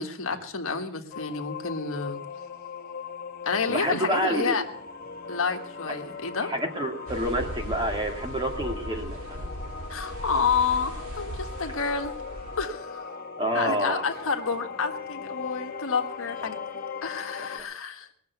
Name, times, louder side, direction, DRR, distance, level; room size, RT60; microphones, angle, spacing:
voice 1, 0.0-2.2 3.4-4.6 5.3-6.5 9.9-12.1 12.6-13.0 13.5-16.6 17.0-18.1, left 5 dB, 65° left, 4 dB, 1.6 m, -29 dB
sound 1, 1.1-17.6, left 5 dB, 40° left, 1.8 m, -39 dB
voice 2, 3.7-4.6 6.4-9.5 13.4-14.0 17.5-17.6, equal, 20° right, 3 dB, 2.3 m, -28 dB
sound 2, 7.1-12.7, equal, 65° right, 3.4 m, -38 dB
20.5 x 6.9 x 8.2 m, 0.65 s
head